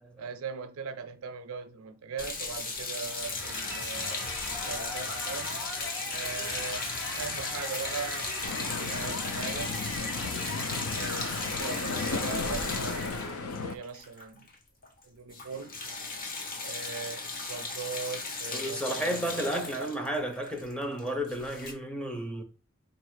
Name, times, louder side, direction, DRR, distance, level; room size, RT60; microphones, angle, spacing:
voice 1, 0.2-5.6 6.1-6.9 7.1-9.8 10.9-12.7 13.5-14.5 15.0-15.8 16.6-19.7, right 5 dB, 75° right, 0.5 m, -40 dB
sound 1, 2.2-14.6 14.8-15.0 15.3-21.7, left 3 dB, 40° left, 0.9 m, -37 dB
sound 2, 3.1-13.5, left 2 dB, 60° left, 1.3 m, -38 dB
sound 3, 8.4-13.8, left 4 dB, 90° left, 0.6 m, -35 dB
voice 2, 18.5-22.4, right 1 dB, 5° left, 0.6 m, -33 dB
4.1 x 2.4 x 4.6 m
head